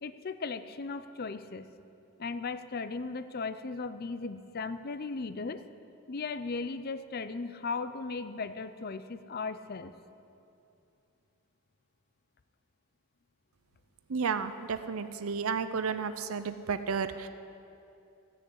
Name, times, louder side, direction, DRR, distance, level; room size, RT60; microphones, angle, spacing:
voice 1, 0.0-1.7 2.2-5.6 6.1-9.9, left 4 dB, 45° left, 12 dB, 0.5 m, -37 dB
voice 2, 14.1-17.3, right 5 dB, 65° right, 11 dB, 0.5 m, -32 dB
16.0 x 6.6 x 8.5 m, 2.7 s
head